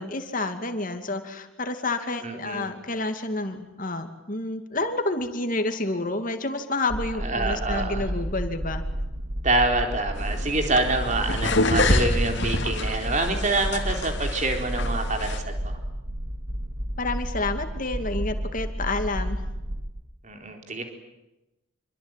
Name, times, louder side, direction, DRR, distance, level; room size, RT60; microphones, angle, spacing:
voice 1, 0.0-8.8 17.0-19.4, left 2 dB, 40° left, 7 dB, 2.5 m, -29 dB
voice 2, 2.2-2.7 7.2-8.1 9.4-15.7 20.2-20.9, right 2 dB, 35° right, 4 dB, 4.0 m, -26 dB
sound 1, 6.9-19.8, equal, 70° right, 4.6 m, -31 dB
sound 2, 10.2-15.4, left 2 dB, 55° left, 2.8 m, -27 dB
27.0 x 24.0 x 9.2 m, 0.98 s
head